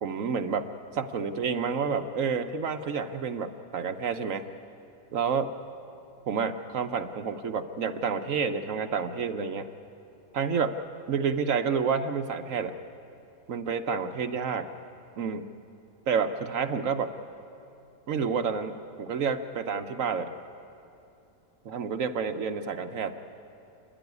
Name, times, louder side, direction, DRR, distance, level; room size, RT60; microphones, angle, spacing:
voice 1, 0.0-0.7 0.9-4.5 5.1-5.5 6.3-9.7 10.3-10.8 11.1-12.7 13.5-14.7 15.2-15.5 16.1-17.1 18.1-20.3 21.6-23.2, right 6 dB, 60° right, 7 dB, 1.0 m, -29 dB
29.0 x 11.0 x 9.5 m, 2.6 s
omnidirectional pair, 1.8 m